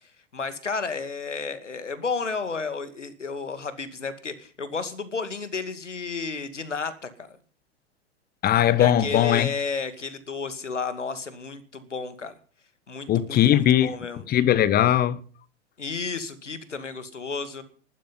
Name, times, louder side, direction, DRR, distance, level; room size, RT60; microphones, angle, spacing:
voice 1, 0.3-7.4 8.8-12.3 12.9-14.2 15.8-17.6, left 4 dB, 85° left, 2.4 m, -32 dB
voice 2, 8.4-9.5 13.1-13.9 14.3-15.2, left 11 dB, 25° left, 1.2 m, -19 dB
15.0 x 12.0 x 5.7 m
figure-of-eight pair, 100°, 35 cm